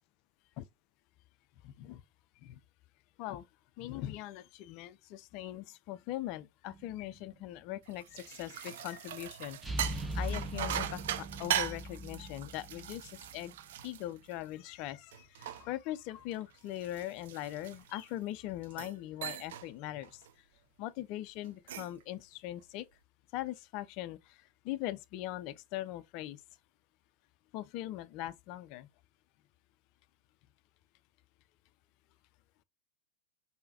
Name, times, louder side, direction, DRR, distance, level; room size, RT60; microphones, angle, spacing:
voice 1, 1.6-2.0 2.4-2.6 3.2-3.5 3.8-9.6 10.1-13.5 13.8-20.2 20.8-22.9 23.3-26.4 27.5-28.9, left 14 dB, 45° left, 0.3 m, -41 dB
sound 1, 6.7-7.3 9.6-13.4, right 1 dB, 5° right, 0.7 m, -40 dB
sound 2, 7.9-14.7 15.1-18.1 18.6-19.0 19.2-19.7 20.0-20.3 21.4-22.0, right 10 dB, 55° right, 0.4 m, -40 dB
4.1 x 3.8 x 2.6 m
figure-of-eight pair, 90°, 0 cm